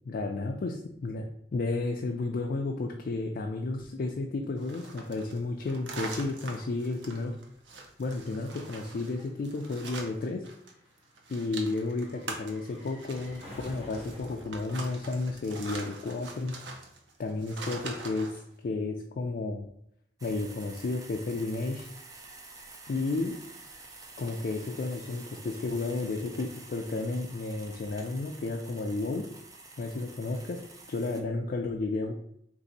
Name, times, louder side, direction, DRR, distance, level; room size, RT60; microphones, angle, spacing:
voice 1, 0.0-7.3 8.0-10.4 11.3-16.5 17.2-18.3 18.6-19.7 20.2-21.9 22.9-23.4 24.2-29.3 29.8-30.6 30.9-32.1, left 3 dB, 55° left, 1 dB, 0.3 m, -32 dB
sound 1, 4.6-10.7 11.0-18.4, right 3 dB, 85° right, 0.7 m, -43 dB
sound 2, 5.5-5.6 5.8-16.2 16.4-16.5, equal, 35° right, 1.1 m, -52 dB
sound 3, 20.2-31.2, right 3 dB, 20° right, 0.5 m, -49 dB
3.2 x 2.7 x 4.0 m, 0.71 s
head